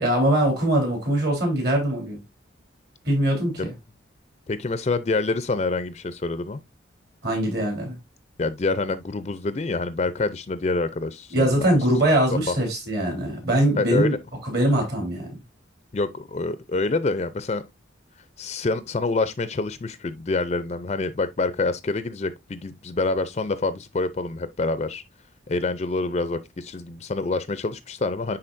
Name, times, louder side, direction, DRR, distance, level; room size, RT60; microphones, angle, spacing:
voice 1, 0.0-2.2 3.0-3.6 7.2-8.0 11.3-14.1 14.4-15.3, right 1 dB, 55° right, 3.2 m, -22 dB
voice 2, 4.5-6.6 8.4-12.6 13.8-14.2 15.9-17.6 18.4-25.0 25.5-28.4, left 3 dB, 35° left, 0.4 m, -27 dB
9.9 x 3.9 x 2.5 m
head